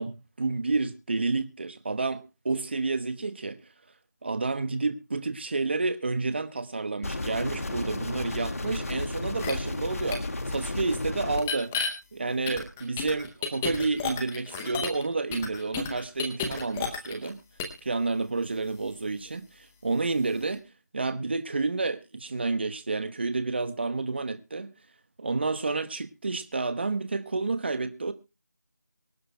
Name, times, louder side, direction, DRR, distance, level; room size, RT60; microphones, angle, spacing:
voice 1, 0.0-3.6 4.2-11.7 12.1-17.4 17.8-20.6 20.9-24.7 25.2-28.1, right 3 dB, 40° right, 1.1 m, -30 dB
sound 1, 7.0-11.4, left 2 dB, 55° left, 1.7 m, -33 dB
sound 2, 9.4-9.5 10.1-10.2 11.4-11.9 12.5-15.0 15.3-17.3 17.6-17.8, left 6 dB, 5° left, 0.7 m, -31 dB
24.5 x 11.0 x 2.2 m
figure-of-eight pair, 170°, 9 cm